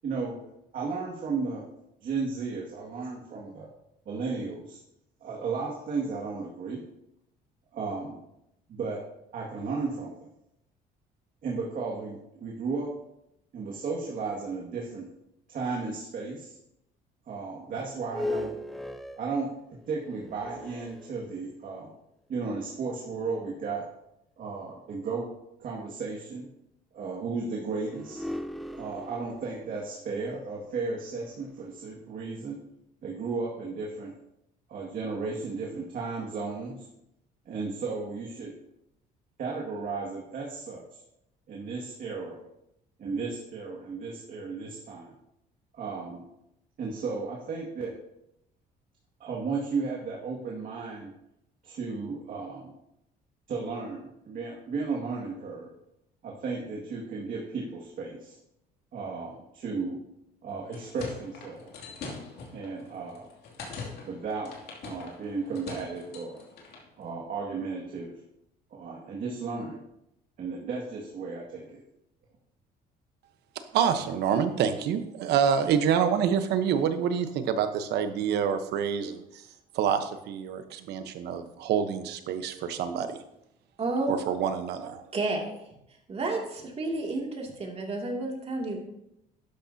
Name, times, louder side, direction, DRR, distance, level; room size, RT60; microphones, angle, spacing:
voice 1, 0.0-0.4 0.7-1.6 2.0-3.7 4.1-4.8 5.2-6.8 7.7-8.2 8.7-9.0 9.3-10.1 11.4-12.9 13.5-15.1 15.5-16.5 17.3-18.5 19.2-19.5 19.9-21.9 22.3-23.8 24.4-25.3 25.6-26.5 26.9-28.2 28.7-32.6 33.0-34.1 34.7-36.9 37.5-38.5 39.4-41.0 41.5-42.4 43.0-45.1 45.7-46.3 46.8-47.9 49.2-51.1 51.6-52.7 53.5-55.7 56.2-58.4 58.9-60.0 60.4-61.7 62.5-63.3 64.0-64.5 64.8-66.4 67.0-68.1 68.7-69.8 70.4-71.8, right 4 dB, 55° right, -3 dB, 2.1 m, -34 dB
sound 1, 17.9-21.8 22.5-22.6 27.8-32.1, left 1 dB, ahead, 0.7 m, -39 dB
sound 2, 60.5-66.9, left 4 dB, 70° left, 2.7 m, -43 dB
voice 2, 73.7-79.5 79.7-83.2 84.1-85.1, right 8 dB, 80° right, 9 dB, 1.0 m, -27 dB
voice 3, 83.8-84.2 85.1-85.6 86.1-88.8, right 2 dB, 35° right, 0 dB, 2.6 m, -31 dB
12.0 x 10.5 x 2.8 m, 0.83 s
cardioid pair, 110°, 17 cm